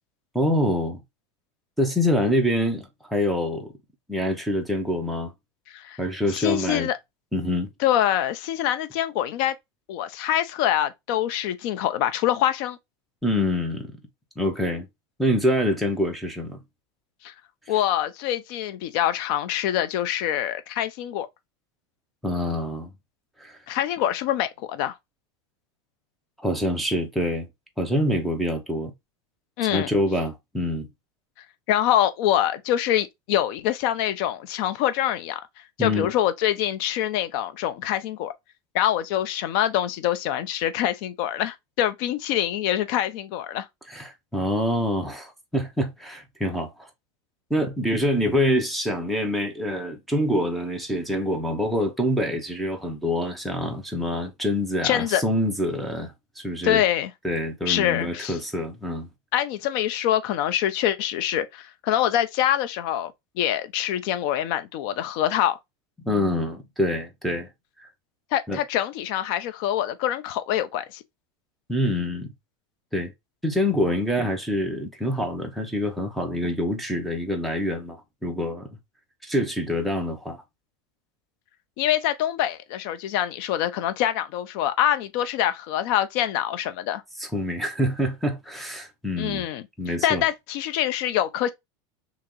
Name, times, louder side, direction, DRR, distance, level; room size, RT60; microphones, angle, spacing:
voice 1, 0.3-1.0 1.8-3.7 4.1-5.3 6.0-6.9 7.3-7.7 13.2-13.9 14.4-14.9 15.2-16.6 22.2-22.9 23.4-23.6 26.4-27.5 27.8-28.9 29.7-30.9 35.8-36.1 43.9-46.9 47.5-56.8 57.2-59.1 66.0-67.5 67.8-67.9 68.5-68.6 71.7-72.3 72.9-73.1 73.4-78.7 79.2-80.4 87.2-89.5 89.8-90.2, left 1 dB, ahead, 0.6 m, -26 dB
voice 2, 5.7-6.0 6.3-7.0 7.8-9.5 9.9-12.8 17.2-17.3 17.7-21.3 23.7-25.0 29.6-29.9 31.7-35.4 35.8-38.3 38.7-43.7 54.8-55.2 56.6-57.1 57.7-58.4 59.3-63.1 63.4-65.6 68.3-71.0 81.8-87.0 89.2-89.6 90.0-91.5, left 11 dB, 55° left, 0.5 m, -25 dB
2.9 x 2.7 x 3.6 m
supercardioid pair, 155°, 15 cm